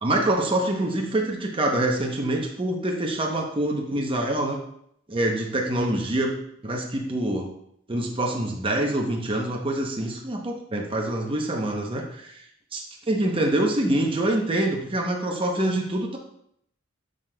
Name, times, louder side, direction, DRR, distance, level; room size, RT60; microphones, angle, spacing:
voice 1, 0.0-4.6 5.1-6.4 6.6-7.5 7.9-12.3 12.7-16.2, right 1 dB, 25° right, 0 dB, 0.8 m, -25 dB
7.3 x 6.5 x 2.2 m, 0.71 s
head